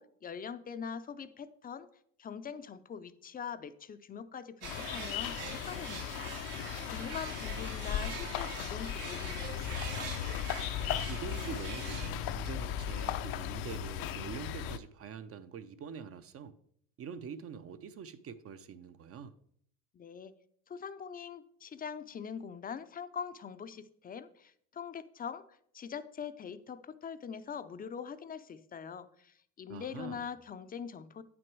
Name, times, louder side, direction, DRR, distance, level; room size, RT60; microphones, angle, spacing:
voice 1, 0.0-1.9 2.2-10.1 19.9-20.3 20.7-31.2, left 7 dB, 25° left, 0.5 m, -43 dB
sound 1, 4.6-14.8, left 10 dB, 65° left, 0.6 m, -37 dB
sound 2, 4.6-12.1, right 7 dB, 85° right, 1.8 m, -44 dB
voice 2, 11.1-16.6 17.0-19.3 29.7-30.3, right 7 dB, 35° right, 0.5 m, -45 dB
8.6 x 6.1 x 4.7 m
supercardioid pair, 110°, 38 cm